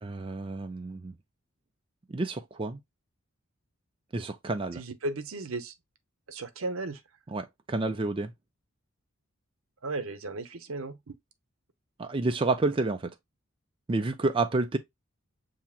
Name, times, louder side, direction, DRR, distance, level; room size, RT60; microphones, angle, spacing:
voice 1, 0.0-1.2 2.1-2.8 4.1-4.8 7.3-8.3 12.0-13.1 13.9-14.8, right 3 dB, 25° right, 0.4 m, -29 dB
voice 2, 4.8-5.7 6.3-7.0 9.8-11.1, right 2 dB, 75° right, 0.8 m, -35 dB
7.0 x 2.8 x 2.4 m
head